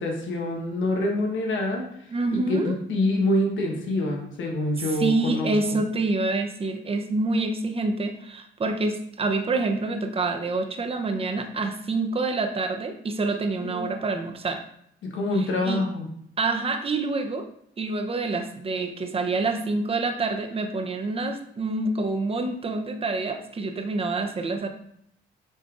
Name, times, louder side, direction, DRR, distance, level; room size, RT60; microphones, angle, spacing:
voice 1, 0.0-1.8 2.3-5.6 13.6-13.9 15.0-16.1, left 1 dB, 75° left, 0 dB, 1.1 m, -26 dB
voice 2, 2.1-2.7 4.8-14.6 15.4-15.8 16.4-17.5 17.8-24.7, right 3 dB, 30° right, 5 dB, 0.6 m, -27 dB
5.3 x 3.5 x 2.4 m, 0.72 s
cardioid pair, 90°, 20 cm